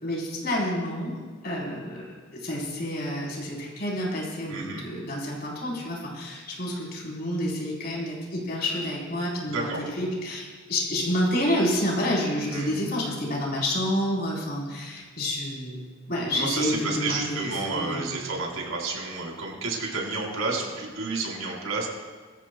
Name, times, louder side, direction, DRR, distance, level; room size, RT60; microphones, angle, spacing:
voice 1, 0.0-15.8 16.1-18.2, left 1 dB, 50° left, -4 dB, 4.1 m, -29 dB
voice 2, 4.5-4.8 9.5-9.8 12.5-12.7 16.3-21.9, right 3 dB, 90° right, -2 dB, 4.0 m, -30 dB
23.0 x 14.5 x 2.3 m, 1.5 s
head